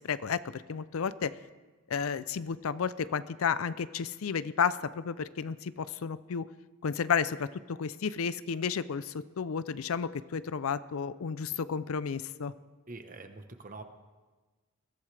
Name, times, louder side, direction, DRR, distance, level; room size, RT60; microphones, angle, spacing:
voice 1, 0.0-1.3 1.9-6.5 6.8-12.5, left 6 dB, 85° left, 16 dB, 0.5 m, -32 dB
voice 2, 12.9-13.8, right 3 dB, 40° right, 7 dB, 1.0 m, -45 dB
21.5 x 14.5 x 3.4 m, 1.3 s
head